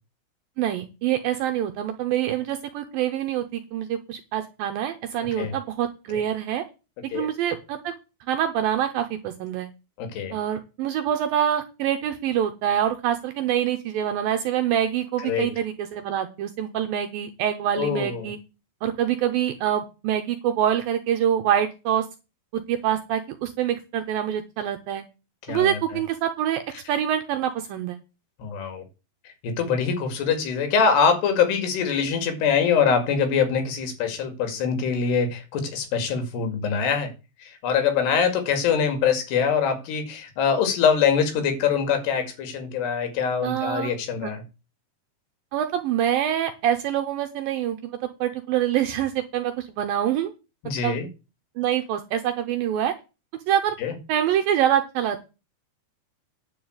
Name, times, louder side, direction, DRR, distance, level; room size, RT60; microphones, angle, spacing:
voice 1, 0.6-6.6 7.1-7.9 8.3-9.7 10.3-18.4 18.8-22.1 22.5-25.0 25.5-26.6 26.9-28.0 43.4-43.9 44.2-44.3 45.5-50.3 50.8-50.9 51.6-52.9 53.5-53.8 54.1-55.2, right 10 dB, 75° right, 6 dB, 2.2 m, -25 dB
voice 2, 10.0-10.3 15.2-15.5 17.8-18.3 25.5-25.8 28.4-28.8 29.4-37.1 37.4-44.4 50.6-51.1 53.8-53.9, left 6 dB, 75° left, 7 dB, 4.2 m, -23 dB
10.5 x 4.8 x 7.9 m, 0.29 s
omnidirectional pair, 4.9 m